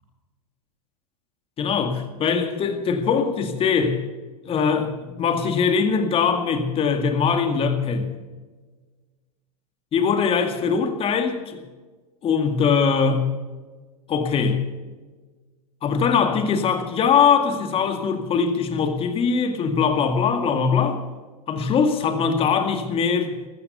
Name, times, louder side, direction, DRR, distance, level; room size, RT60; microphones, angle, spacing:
voice 1, 1.6-4.0 4.4-8.1 9.9-11.6 12.2-13.3 14.1-14.6 15.8-21.0 21.5-23.4, left 6 dB, 25° left, 7 dB, 2.1 m, -21 dB
14.0 x 13.5 x 6.8 m, 1.4 s
hypercardioid pair, 105°, 20 cm